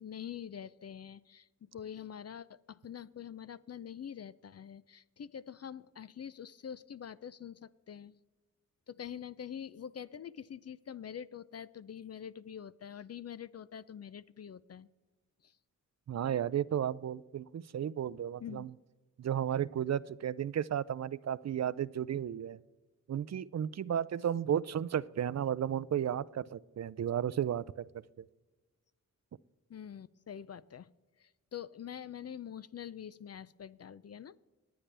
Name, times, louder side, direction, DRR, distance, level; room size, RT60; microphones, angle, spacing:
voice 1, 0.0-8.2 8.9-14.9 15.4-15.6 18.4-18.7 29.7-30.9 31.2-34.4, left 8 dB, 45° left, 17 dB, 0.5 m, -45 dB
voice 2, 16.1-18.7 19.2-22.6 23.1-27.6 28.2-28.3, right 9 dB, 50° right, 18 dB, 0.5 m, -33 dB
20.5 x 8.6 x 3.4 m, 1.2 s
cardioid pair, 45°, 34 cm